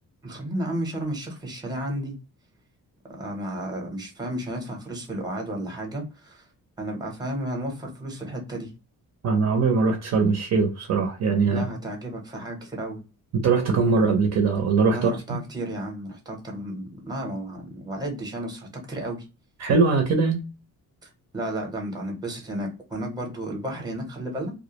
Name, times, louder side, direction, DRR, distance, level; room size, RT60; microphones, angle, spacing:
voice 1, 0.2-2.1 3.1-6.4 6.8-8.7 11.5-13.0 14.9-19.2 21.0-24.5, right 1 dB, 10° right, 0.7 m, -33 dB
voice 2, 9.2-11.6 13.3-15.4 19.6-20.4, right 4 dB, 50° right, 0.5 m, -21 dB
2.3 x 2.0 x 2.8 m
cardioid pair, 160°, 34 cm